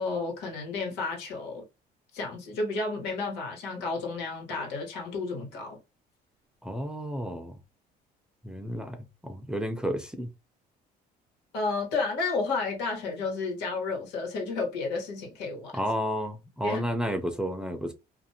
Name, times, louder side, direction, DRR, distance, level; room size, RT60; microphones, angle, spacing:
voice 1, 0.0-1.6 2.1-5.8 11.5-15.8 16.6-16.8, left 3 dB, 90° left, 1.4 m, -31 dB
voice 2, 6.6-7.6 8.4-10.3 15.7-17.9, equal, 5° right, 0.5 m, -31 dB
2.5 x 2.4 x 2.8 m
cardioid pair, 110°, 17 cm